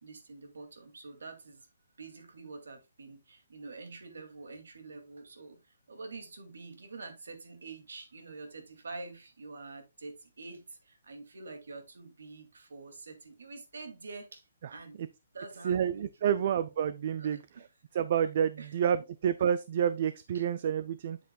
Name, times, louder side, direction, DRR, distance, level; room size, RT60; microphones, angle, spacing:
voice 1, 0.0-1.7 2.0-15.0 15.3-16.1 16.3-16.4 17.2-17.7 18.6-18.8 20.3-20.4, right 3 dB, 90° right, 2.4 m, -46 dB
voice 2, 15.6-17.4 17.9-21.2, right 8 dB, 35° right, 0.4 m, -29 dB
8.1 x 7.8 x 2.3 m
hypercardioid pair, 175°, 0 cm